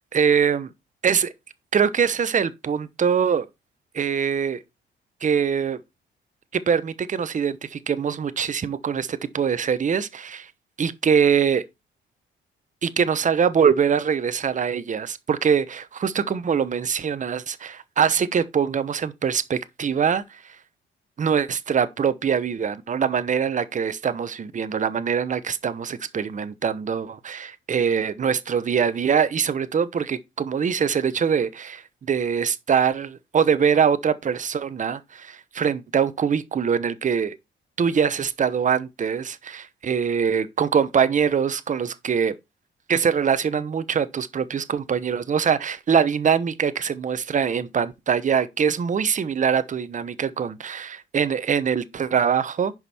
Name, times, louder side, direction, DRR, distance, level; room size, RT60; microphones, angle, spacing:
voice 1, 0.1-0.7 1.0-1.3 1.7-3.5 3.9-4.6 5.2-5.8 6.5-10.5 10.8-11.6 12.8-20.4 21.2-37.4 37.8-42.3 42.9-52.7, right 7 dB, 40° right, 1.0 m, -23 dB
11.0 x 5.3 x 4.3 m
cardioid pair, 90°, 20 cm